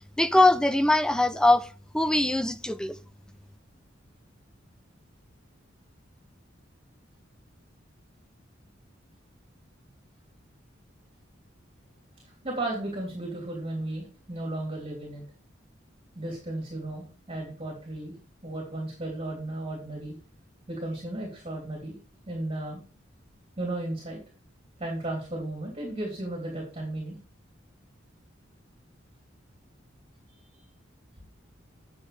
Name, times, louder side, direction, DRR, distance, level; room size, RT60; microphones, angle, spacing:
voice 1, 0.2-1.7 1.9-2.9, left 2 dB, 5° left, 0.5 m, -22 dB
voice 2, 12.4-15.2 16.1-18.2 18.4-20.1 20.7-22.0 22.3-22.8 23.6-24.2 24.8-27.1, right 1 dB, 30° right, 2.9 m, -34 dB
9.7 x 6.3 x 3.3 m
head